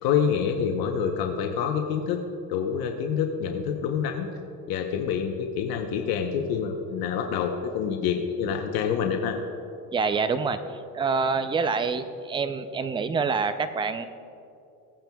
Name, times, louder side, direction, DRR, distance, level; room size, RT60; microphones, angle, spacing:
voice 1, 0.0-2.2 2.5-4.3 4.7-9.4, left 7 dB, 65° left, 4 dB, 0.9 m, -27 dB
voice 2, 9.9-10.6 10.9-14.1, right 5 dB, 15° right, 11 dB, 0.4 m, -26 dB
17.5 x 8.8 x 2.3 m, 2.6 s
supercardioid pair, 105°, 39 cm